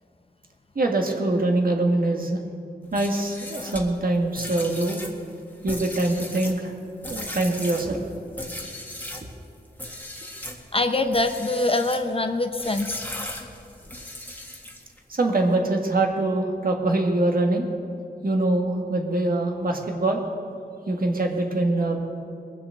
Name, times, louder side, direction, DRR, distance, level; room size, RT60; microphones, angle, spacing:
voice 1, 0.8-2.4 2.9-5.0 5.6-6.7 7.1-8.0 15.1-17.7 18.2-20.2 20.9-22.0, right 2 dB, 60° right, 2 dB, 1.9 m, -23 dB
sound 1, 2.8-9.3 9.8-10.6 11.1-12.1 12.6-15.0, left 1 dB, 10° left, 1.7 m, -37 dB
voice 2, 10.7-13.0, left 2 dB, 35° left, 7 dB, 0.8 m, -24 dB
21.5 x 7.5 x 6.5 m, 2.7 s
wide cardioid pair, 100°, 17 cm